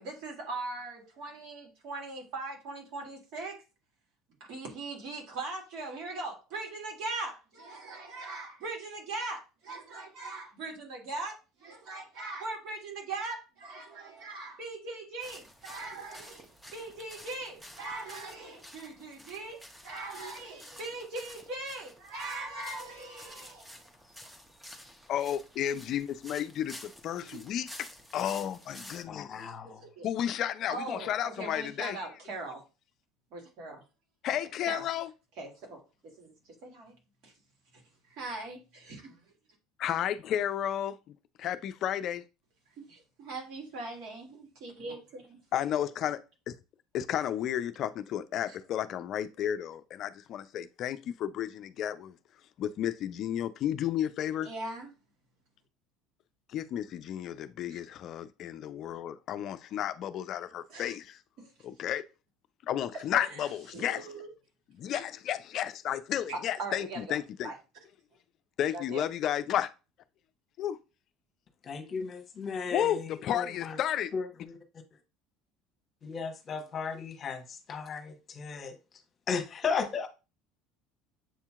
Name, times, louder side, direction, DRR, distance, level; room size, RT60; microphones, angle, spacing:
voice 1, 0.0-3.6 4.4-16.5 16.7-23.8 27.3-27.4 29.6-30.1 30.7-32.6 33.3-33.8 34.7-34.9 35.4-36.3 36.6-36.9 37.2-37.3 37.7-37.8 38.1-39.2 42.8-45.4 48.5-48.6 54.4-54.9 57.7-57.8 60.7-61.0 61.4-61.5 62.9-63.0 63.7-64.3 64.9-65.0 66.3-67.2 67.4-67.6 68.7-69.1, right 2 dB, 65° right, 1.9 m, -40 dB
sound 1, 15.2-29.0, equal, 5° right, 0.8 m, -51 dB
voice 2, 25.1-27.9 28.1-29.5 30.0-32.1 34.2-35.1 39.8-41.0 41.4-42.2 45.5-46.2 46.5-46.6 46.9-52.2 52.6-54.5 56.5-61.2 61.6-62.0 62.7-64.1 64.7-67.5 68.6-69.7 70.6-70.8 72.7-74.1, left 10 dB, 55° left, 0.4 m, -32 dB
voice 3, 29.1-29.9 71.6-73.8 74.1-74.8 76.0-78.8 79.3-80.1, left 5 dB, 40° left, 1.1 m, -35 dB
7.6 x 2.8 x 2.4 m
supercardioid pair, 90°, 0 cm